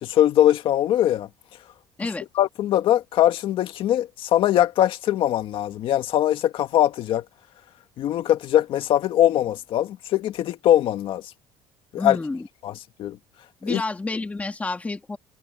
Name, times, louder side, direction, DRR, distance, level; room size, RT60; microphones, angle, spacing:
voice 1, 0.0-1.3 2.4-7.2 8.0-11.2 11.9-12.2 12.6-13.2 13.7-13.8, left 12 dB, 60° left, 2.0 m, -21 dB
voice 2, 12.0-12.5 13.6-15.2, left 3 dB, 15° left, 1.9 m, -29 dB
cardioid pair, 125°, 10 cm